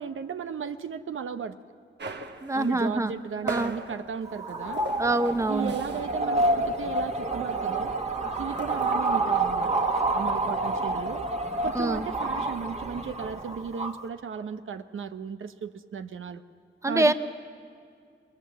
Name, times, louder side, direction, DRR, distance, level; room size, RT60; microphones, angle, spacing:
voice 1, 0.0-1.6 2.5-4.8 5.5-8.0 8.4-9.7 10.1-11.3 11.6-16.4 16.9-17.1, right 6 dB, 80° right, 9 dB, 0.8 m, -35 dB
sound 1, 2.0-6.2 6.5-6.7 7.0-8.9, right 3 dB, 55° right, 1.3 m, -39 dB
voice 2, 2.4-3.1 3.4-3.7 5.0-5.7 11.7-12.1 16.8-17.1, right 2 dB, 15° right, 10 dB, 0.9 m, -25 dB
sound 2, 4.3-14.0, right 2 dB, 30° right, 1.6 m, -28 dB
21.5 x 21.0 x 7.5 m, 2.3 s
cardioid pair, 70°, 21 cm